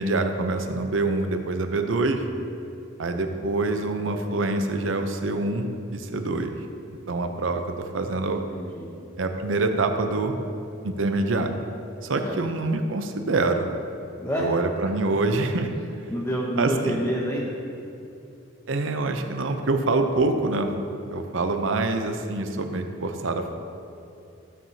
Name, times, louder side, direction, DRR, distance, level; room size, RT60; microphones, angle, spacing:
voice 1, 0.0-2.2 3.0-6.5 7.1-8.4 9.2-10.3 10.8-11.5 12.0-13.7 14.4-15.7 16.6-17.0 18.7-20.7 21.1-23.6, right 2 dB, 80° right, 6 dB, 0.6 m, -25 dB
voice 2, 8.2-8.9 12.2-12.4 14.2-14.5 15.1-15.2 16.1-17.5, equal, 10° left, -5 dB, 0.7 m, -28 dB
13.5 x 7.4 x 2.8 m, 2.7 s
head